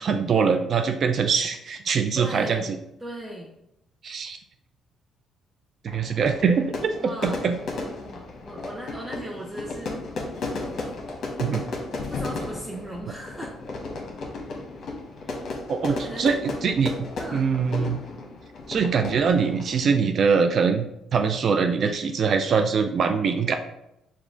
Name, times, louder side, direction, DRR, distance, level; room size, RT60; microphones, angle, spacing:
voice 1, 0.0-2.7 4.0-4.4 5.8-7.6 11.4-11.6 15.7-16.9 17.3-18.0 18.7-23.6, right 5 dB, 55° right, 6 dB, 0.3 m, -23 dB
voice 2, 2.2-2.7 3.0-3.5 7.0-10.4 12.1-13.5 15.2-15.4 15.8-16.3 17.2-17.5, right 1 dB, 15° right, -3 dB, 0.7 m, -38 dB
Fire / Fireworks, 5.9-19.9, left 3 dB, 60° left, 0.9 m, -34 dB
4.9 x 2.3 x 3.7 m, 0.84 s
supercardioid pair, 80°, 0 cm